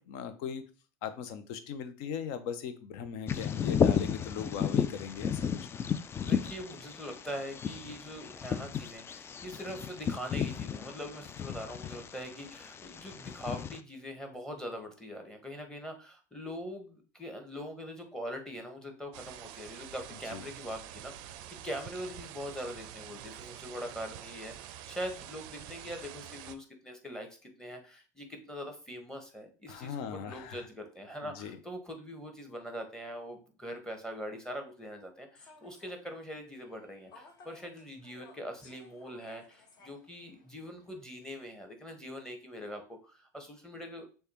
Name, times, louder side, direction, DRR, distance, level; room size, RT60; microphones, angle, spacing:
voice 1, 0.1-0.6 1.0-5.4 5.7-5.8 20.3-20.4 29.7-30.6 31.2-31.6, left 7 dB, 60° left, 11 dB, 0.6 m, -39 dB
Bird vocalization bird call bird song, 3.3-13.8, left 7 dB, 25° left, 0.3 m, -33 dB
voice 2, 6.2-44.1, equal, 5° left, 4 dB, 1.2 m, -42 dB
sound 1, 19.1-26.5, right 11 dB, 55° right, 0.4 m, -47 dB
Human voice / Subway metro underground, 35.3-41.1, left 3 dB, 45° left, 1.2 m, -58 dB
6.4 x 2.3 x 3.0 m, 0.35 s
hypercardioid pair, 80°, 9 cm